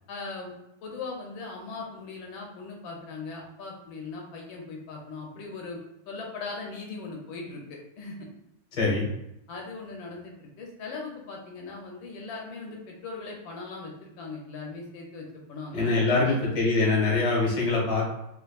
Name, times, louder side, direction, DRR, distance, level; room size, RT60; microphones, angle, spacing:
voice 1, 0.1-0.5 0.8-5.8 6.1-8.3 9.5-16.4, left 3 dB, 80° left, 0 dB, 1.4 m, -39 dB
voice 2, 8.7-9.1 15.7-18.1, left 3 dB, 30° left, -4 dB, 0.8 m, -24 dB
3.4 x 3.1 x 2.3 m, 0.85 s
omnidirectional pair, 2.2 m